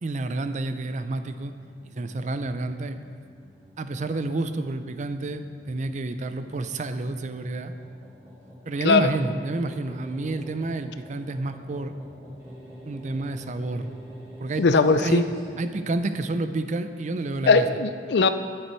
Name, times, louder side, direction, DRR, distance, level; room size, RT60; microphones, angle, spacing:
voice 1, 0.0-1.5 1.8-3.0 3.8-7.7 8.7-11.9 12.8-13.9 14.4-15.2 15.6-17.7, right 2 dB, 40° right, 10 dB, 0.4 m, -29 dB
sound 1, 1.2-15.9, equal, 20° right, 2.6 m, -47 dB
voice 2, 14.6-15.2 17.5-18.3, left 4 dB, 65° left, 10 dB, 0.4 m, -19 dB
9.6 x 7.7 x 4.5 m, 2.1 s
head